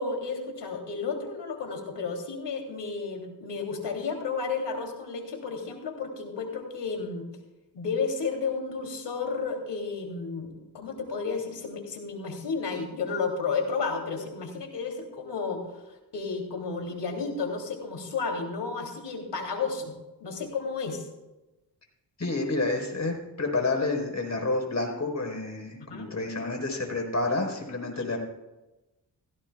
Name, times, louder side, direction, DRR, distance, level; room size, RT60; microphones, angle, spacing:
voice 1, 0.0-7.3 7.7-15.8 16.1-19.9 20.2-21.1 25.9-26.1 27.9-28.0, left 4 dB, 75° left, 2 dB, 3.1 m, -32 dB
voice 2, 22.2-28.2, left 2 dB, 40° left, 2 dB, 4.3 m, -29 dB
16.0 x 16.0 x 2.4 m, 1.0 s
cardioid pair, 60°, 42 cm